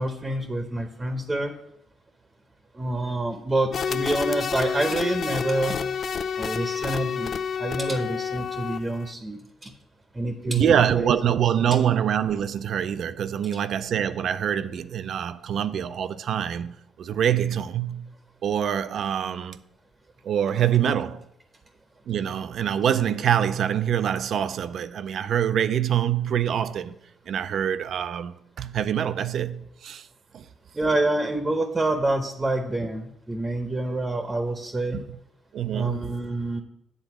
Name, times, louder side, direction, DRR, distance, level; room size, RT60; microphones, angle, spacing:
voice 1, 0.0-1.5 2.7-5.8 6.4-7.3 7.6-9.7 10.1-11.4 30.7-35.0 35.7-36.6, right 2 dB, 20° right, 0.8 m, -27 dB
sound 1, 3.7-9.1, left 6 dB, 55° left, 0.3 m, -29 dB
voice 2, 10.4-18.1 18.4-19.6 20.2-21.3 22.1-26.9 27.3-30.1 30.3-30.4 34.9-35.0 35.5-36.2, right 9 dB, 65° right, 0.4 m, -25 dB
8.1 x 3.9 x 5.9 m
cardioid pair, 90°, 0 cm